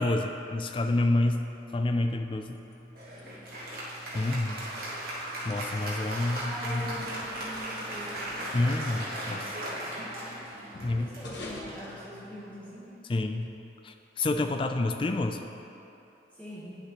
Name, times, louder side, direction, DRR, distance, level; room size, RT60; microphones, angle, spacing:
voice 1, 0.0-1.4 1.7-2.6 4.1-4.6 5.4-6.9 8.5-9.5 10.8-11.2 13.1-13.5 13.8-15.4, left 2 dB, 30° left, 6 dB, 0.3 m, -28 dB
sound 1, 2.3-12.8, left 1 dB, 80° left, 0.9 m, -49 dB
Applause, 2.9-12.8, right 1 dB, 50° right, 1.4 m, -38 dB
sound 2, 4.4-9.0, right 3 dB, 85° right, 0.5 m, -45 dB
voice 2, 6.3-8.3 10.9-13.0 16.3-16.8, equal, 10° left, -8 dB, 1.2 m, -43 dB
9.5 x 6.5 x 3.0 m, 2.9 s
head